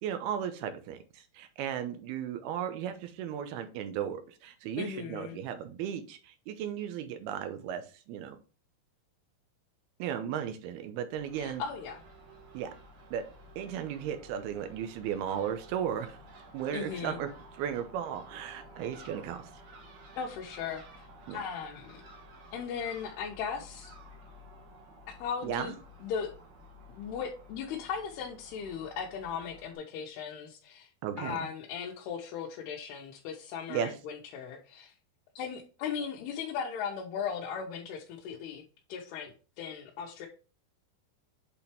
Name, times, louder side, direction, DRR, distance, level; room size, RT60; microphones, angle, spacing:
voice 1, 0.0-8.4 10.0-11.6 12.5-12.7 13.1-13.3 13.6-16.2 16.5-19.5 21.3-21.4 25.4-25.8 31.0-31.5 33.7-33.9, right 9 dB, 85° right, 8 dB, 2.8 m, -35 dB
voice 2, 4.8-5.4 11.4-12.0 16.7-17.2 20.1-21.1 21.3-22.0 22.5-23.9 25.2-25.7 26.0-26.3 26.9-30.9 31.2-34.9 35.4-38.6 38.9-40.3, left 7 dB, 90° left, -1 dB, 3.0 m, -37 dB
Crow / Gull seagull, 11.1-29.7, right 1 dB, 55° right, 2.5 m, -53 dB
8.2 x 4.2 x 3.4 m, 0.36 s
omnidirectional pair, 4.5 m